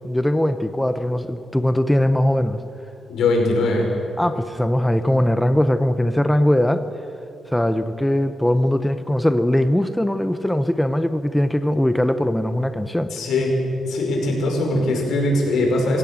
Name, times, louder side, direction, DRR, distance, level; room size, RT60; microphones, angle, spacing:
voice 1, 0.0-2.6 4.2-6.8 7.5-13.1, left 1 dB, 5° left, 10 dB, 0.8 m, -20 dB
voice 2, 3.1-3.9 13.1-13.6 13.8-16.0, left 2 dB, 85° left, 1 dB, 5.4 m, -21 dB
25.5 x 16.5 x 7.5 m, 2.6 s
cardioid pair, 120°, 0 cm